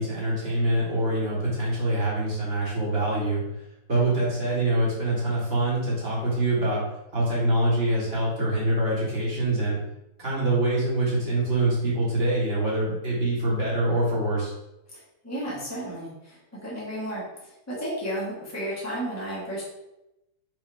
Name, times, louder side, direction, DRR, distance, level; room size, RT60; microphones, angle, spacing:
voice 1, 0.0-3.4 3.9-6.8 7.1-9.8 10.2-14.5, right 1 dB, 40° right, -6 dB, 2.2 m, -25 dB
voice 2, 15.2-17.2 17.7-19.6, equal, 10° left, -7 dB, 1.7 m, -32 dB
5.2 x 5.0 x 3.5 m, 0.91 s
omnidirectional pair, 1.7 m